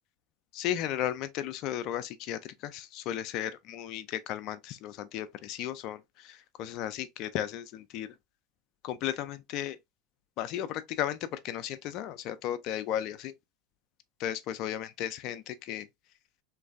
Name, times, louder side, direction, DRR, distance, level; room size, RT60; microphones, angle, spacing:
voice 1, 0.5-8.1 8.8-9.8 10.4-13.3 14.2-15.9, left 11 dB, 55° left, 0.4 m, -35 dB
3.0 x 2.5 x 2.4 m
hypercardioid pair, 85°, 0 cm